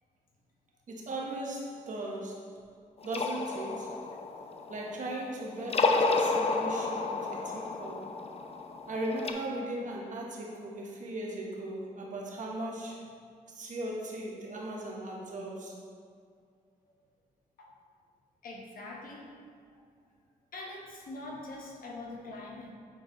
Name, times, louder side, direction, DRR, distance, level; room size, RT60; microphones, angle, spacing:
voice 1, 0.9-2.5 3.0-3.9 4.7-8.0 8.9-13.0 13.5-15.8, right 1 dB, 55° right, -2 dB, 1.3 m, -38 dB
sound 1, 3.0-5.2 5.6-9.3, left 3 dB, 40° left, 0.6 m, -31 dB
voice 2, 18.4-19.3 20.5-22.7, left 2 dB, 65° left, -2 dB, 1.2 m, -43 dB
8.6 x 3.9 x 3.2 m, 2.2 s
supercardioid pair, 60°, 16 cm